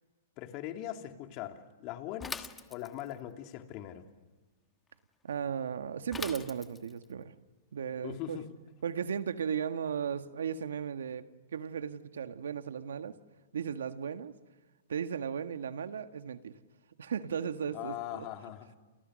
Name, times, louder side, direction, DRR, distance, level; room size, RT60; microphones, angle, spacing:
voice 1, 0.4-4.0 8.0-8.4 17.7-18.7, left 12 dB, 40° left, 5 dB, 2.9 m, -41 dB
Bicycle / Mechanisms, 2.2-3.2 6.1-7.0, left 5 dB, 10° left, 1.3 m, -41 dB
voice 2, 5.2-7.3 7.7-8.4 8.8-11.3 11.5-13.2 13.5-14.3 14.9-16.5 17.0-18.2, right 7 dB, 80° right, 9 dB, 1.7 m, -36 dB
30.0 x 29.0 x 6.5 m, 1.3 s
hypercardioid pair, 135°, 0 cm